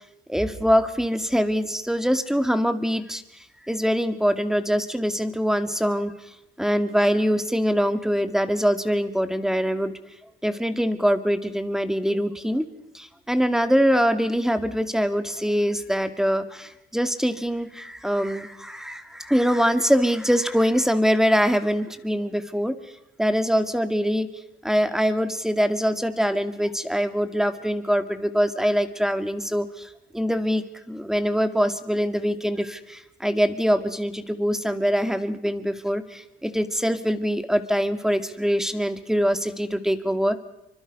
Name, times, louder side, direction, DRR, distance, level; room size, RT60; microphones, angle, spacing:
voice 1, 0.3-6.1 6.6-9.9 10.4-12.6 12.9-22.7 23.2-24.3 24.6-40.4, equal, ahead, 9 dB, 2.2 m, -23 dB
27.5 x 24.5 x 5.5 m, 0.84 s
cardioid pair, 90°, 20 cm